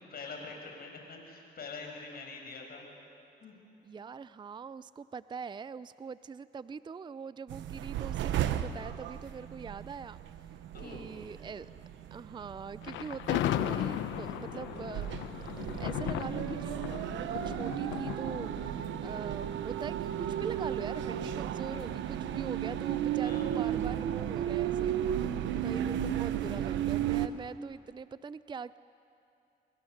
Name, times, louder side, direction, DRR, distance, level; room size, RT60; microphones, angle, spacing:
voice 1, 0.1-2.9 3.4-3.5 10.7-11.2 23.2-23.5, left 4 dB, 55° left, 1 dB, 6.3 m, -44 dB
voice 2, 3.8-10.2 10.8-11.7 12.1-15.1 15.8-16.9 17.2-28.8, right 5 dB, 25° right, 16 dB, 0.5 m, -43 dB
sound 1, 7.5-27.3, right 11 dB, 80° right, 1.0 m, -34 dB
sound 2, 8.3-24.8, right 5 dB, 55° right, 3.0 m, -59 dB
Thunder, 12.8-20.0, left 12 dB, 80° left, 0.9 m, -36 dB
27.0 x 23.0 x 6.6 m, 2.6 s
supercardioid pair, 75°, 19 cm